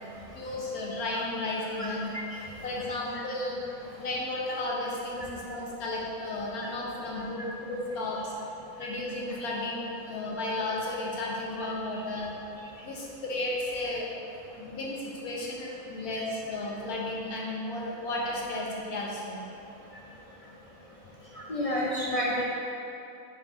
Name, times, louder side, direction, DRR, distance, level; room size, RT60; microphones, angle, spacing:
voice 1, 0.3-2.1 2.6-3.6 4.0-8.3 8.8-12.3 12.8-14.1 14.5-19.4, left 2 dB, 85° left, -3 dB, 1.6 m, -33 dB
voice 2, 1.8-2.2 5.2-5.3 6.6-6.7 16.1-16.2 21.4-22.4, equal, 45° left, -5 dB, 0.5 m, -30 dB
8.9 x 3.9 x 3.7 m, 2.7 s
omnidirectional pair, 1.5 m